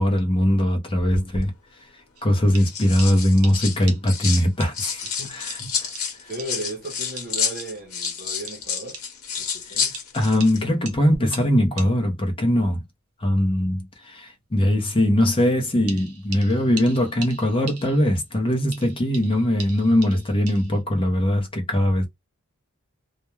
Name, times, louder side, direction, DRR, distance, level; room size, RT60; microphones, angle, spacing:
voice 1, 0.0-1.5 2.2-5.0 5.3-5.9 6.2-6.3 9.7-9.9 10.1-12.8 13.2-22.1, left 1 dB, 25° left, 0.7 m, -21 dB
sound 1, 1.0-1.5 2.4-4.5 4.7-10.6 10.9-11.2, left 6 dB, 70° left, 0.9 m, -30 dB
sound 2, 2.2-2.3 2.5-2.7 3.0-3.1 3.4-3.6 3.9-4.0 4.6-4.7 5.1-5.2 5.5-5.6 6.0-6.1 6.4-6.5 7.2-7.3 7.6-7.7 8.0-8.2 8.5-8.6 8.9-9.1 9.9-10.1 10.4-10.5 10.9-11.0 11.3-11.5 11.8-11.9 15.9-18.2 18.7-20.8, right 5 dB, 80° right, 0.7 m, -39 dB
voice 2, 6.2-9.0 9.3-9.9, right 2 dB, 45° right, 0.9 m, -36 dB
2.3 x 2.1 x 3.0 m
head